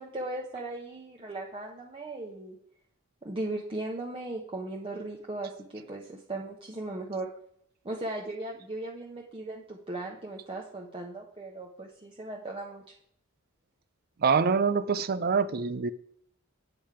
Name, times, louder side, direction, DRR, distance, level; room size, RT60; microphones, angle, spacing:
voice 1, 0.0-2.6 3.2-7.3 7.8-12.8, right 2 dB, 25° right, -1 dB, 1.0 m, -37 dB
voice 2, 14.2-15.9, right 5 dB, 50° right, 14 dB, 0.5 m, -25 dB
8.6 x 7.9 x 4.8 m, 0.69 s
head